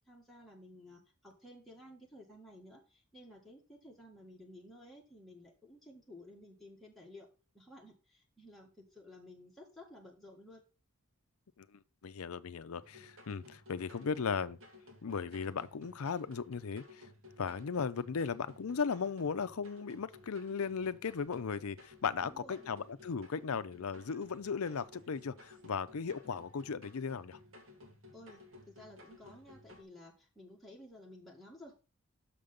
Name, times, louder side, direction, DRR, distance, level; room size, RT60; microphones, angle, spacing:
voice 1, 0.1-7.3 7.5-10.6 22.2-22.7 28.1-31.8, left 1 dB, ahead, 1.8 m, -54 dB
voice 2, 11.6-14.6 15.0-17.1 17.4-27.4, left 5 dB, 75° left, 0.5 m, -37 dB
sound 1, 12.8-29.8, left 2 dB, 60° right, 2.2 m, -57 dB
6.8 x 5.1 x 5.4 m
head